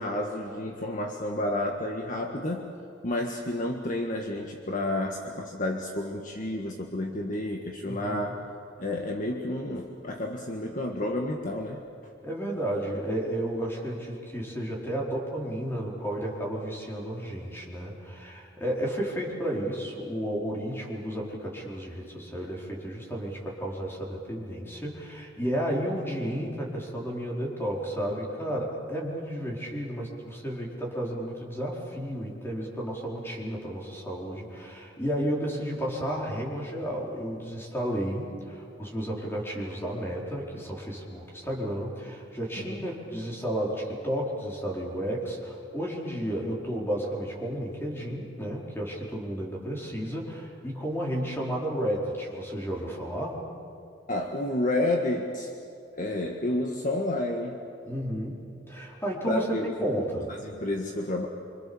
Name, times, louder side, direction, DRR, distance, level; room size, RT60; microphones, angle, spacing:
voice 1, 0.0-2.7 3.0-8.4 8.8-11.8 42.6-42.9 54.1-55.5 56.0-57.6 59.2-59.7 60.3-61.3, left 1 dB, 45° left, 2 dB, 1.6 m, -30 dB
voice 2, 7.9-8.2 12.2-53.4 57.9-60.3, equal, 15° left, -2 dB, 4.6 m, -32 dB
26.5 x 26.0 x 7.1 m, 2.6 s
head